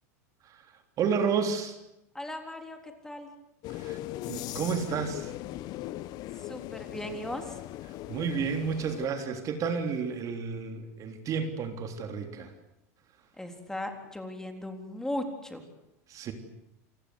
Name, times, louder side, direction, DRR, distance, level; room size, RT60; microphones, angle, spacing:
voice 1, 1.0-1.8 3.7-4.0 4.3-5.3 8.1-12.5 16.1-16.3, right 6 dB, 40° right, 6 dB, 3.5 m, -31 dB
voice 2, 2.1-3.3 6.4-7.6 13.4-15.6, left 1 dB, 5° left, 5 dB, 3.8 m, -37 dB
sound 1, 3.6-9.1, left 15 dB, 50° left, 0.9 m, -39 dB
28.0 x 19.5 x 8.0 m, 0.85 s
hypercardioid pair, 110°, 9 cm